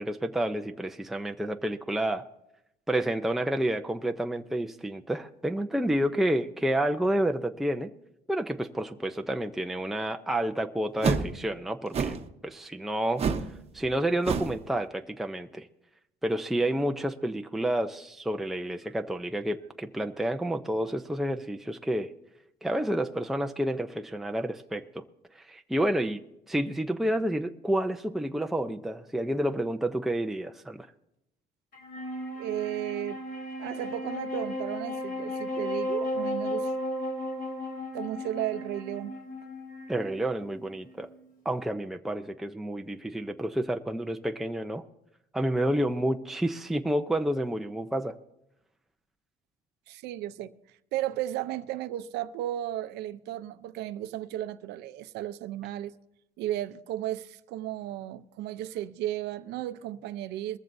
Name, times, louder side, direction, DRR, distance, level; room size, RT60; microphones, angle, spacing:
voice 1, 0.0-2.2 2.9-7.9 8.3-12.2 12.4-13.2 13.7-15.7 16.2-22.1 22.6-25.0 25.5-26.2 26.5-30.9 39.9-41.1 41.4-44.8 45.3-48.1, right 1 dB, ahead, 0.6 m, -29 dB
sound 1, 11.0-11.3 11.9-12.3 13.2-13.5 13.8-14.0 14.2-14.6, right 5 dB, 35° right, 1.0 m, -28 dB
Wind instrument woodwind instrument, 31.7-41.2, left 1 dB, 55° left, 3.4 m, -35 dB
voice 2, 32.4-33.2 33.6-36.7 37.9-39.1 49.9-50.5 50.9-55.9 56.4-60.6, right 13 dB, 85° right, 0.7 m, -34 dB
21.0 x 14.5 x 2.7 m
cardioid pair, 110°, 17 cm